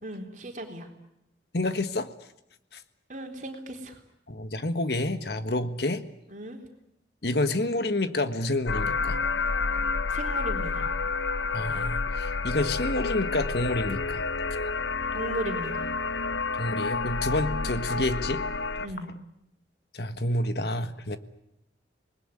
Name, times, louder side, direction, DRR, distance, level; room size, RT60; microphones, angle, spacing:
voice 1, 0.0-0.9 3.1-4.0 6.3-6.6 10.1-10.9 15.1-15.9 18.8-19.1, right 1 dB, 45° right, 3 dB, 3.8 m, -36 dB
voice 2, 1.5-2.1 2.7-2.8 4.3-6.0 7.2-9.2 11.5-14.2 16.6-18.5 19.9-21.2, left 2 dB, 60° left, 10 dB, 1.5 m, -28 dB
sound 1, 8.7-18.9, left 4 dB, 90° left, 1.0 m, -29 dB
28.0 x 20.5 x 9.9 m, 0.84 s
head